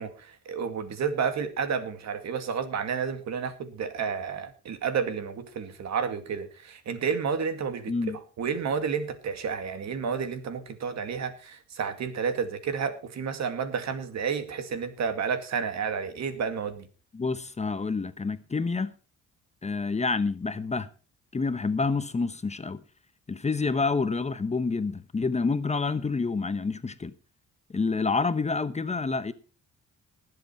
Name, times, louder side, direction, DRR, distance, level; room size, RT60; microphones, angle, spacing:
voice 1, 0.0-7.9 8.4-16.9, right 6 dB, 65° right, 2.2 m, -31 dB
voice 2, 7.9-8.2 17.1-18.9 19.6-20.9 21.3-22.8 23.3-27.1 27.7-29.3, left 4 dB, 20° left, 0.9 m, -28 dB
19.5 x 7.9 x 4.4 m
cardioid pair, 90°, 30 cm